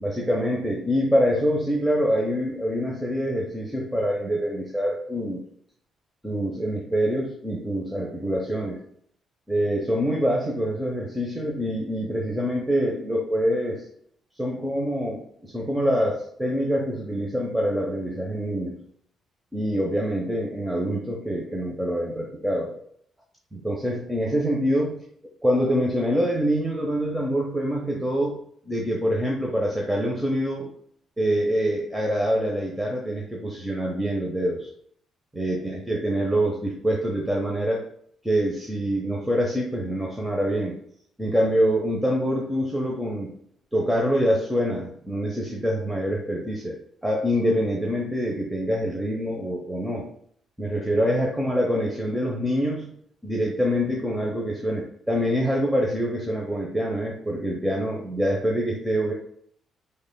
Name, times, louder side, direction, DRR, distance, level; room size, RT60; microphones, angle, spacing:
voice 1, 0.0-5.4 6.2-8.8 9.5-13.9 14.4-18.8 19.5-22.8 23.5-25.0 25.4-28.4 28.7-30.7 31.2-34.7 35.3-37.9 38.2-40.8 41.2-43.3 43.7-46.8 47.0-50.1 50.6-52.9 53.2-59.1, equal, 5° right, -2 dB, 0.9 m, -25 dB
6.8 x 3.3 x 2.2 m, 0.65 s
cardioid pair, 90°, 0 cm